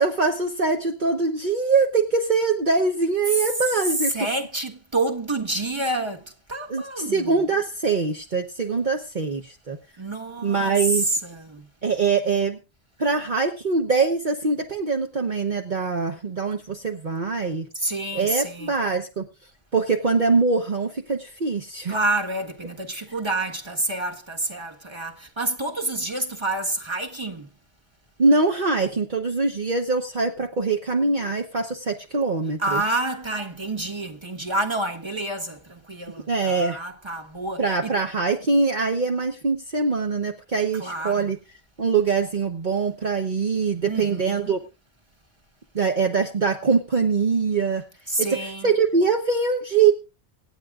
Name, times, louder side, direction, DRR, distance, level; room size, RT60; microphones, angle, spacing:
voice 1, 0.0-4.1 6.7-9.8 10.4-11.1 11.8-12.6 13.0-17.7 18.1-19.3 19.7-22.0 28.2-32.8 36.3-36.8 37.6-41.4 41.8-44.6 45.7-47.8 48.2-49.9, right 4 dB, 45° right, 1.2 m, -23 dB
voice 2, 4.1-7.6 10.0-11.7 17.7-18.7 21.9-27.5 32.6-37.9 40.8-41.3 43.8-44.5 48.1-48.7, right 2 dB, 25° right, 1.5 m, -28 dB
26.0 x 9.1 x 2.5 m
omnidirectional pair, 1.1 m